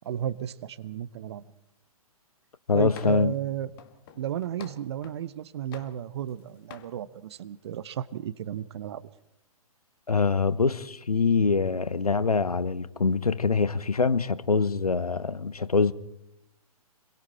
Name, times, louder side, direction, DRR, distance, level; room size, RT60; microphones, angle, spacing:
voice 1, 0.0-1.4 2.7-3.7 4.2-9.0, right 10 dB, 45° right, 1.0 m, -33 dB
voice 2, 2.7-3.3 10.1-15.9, left 4 dB, 75° left, 1.0 m, -24 dB
sound 1, 2.9-3.4 3.8-5.3 5.7-6.4 6.7-6.9, left 9 dB, 35° left, 1.7 m, -48 dB
26.0 x 22.5 x 4.4 m
figure-of-eight pair, 125°, 19 cm